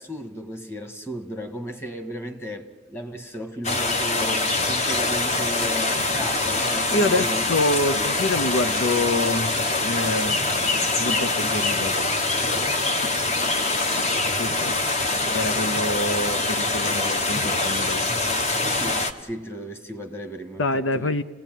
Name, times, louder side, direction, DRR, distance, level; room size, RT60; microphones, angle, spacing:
voice 1, 0.0-7.4 18.6-21.1, equal, 15° left, 6 dB, 1.7 m, -35 dB
sound 1, 3.6-19.1, left 2 dB, 35° left, 1.2 m, -24 dB
voice 2, 6.9-10.4 11.0-12.1 14.4-14.8 15.3-18.1 20.6-21.2, left 2 dB, 80° left, 12 dB, 0.8 m, -26 dB
29.0 x 17.5 x 9.2 m, 1.3 s
head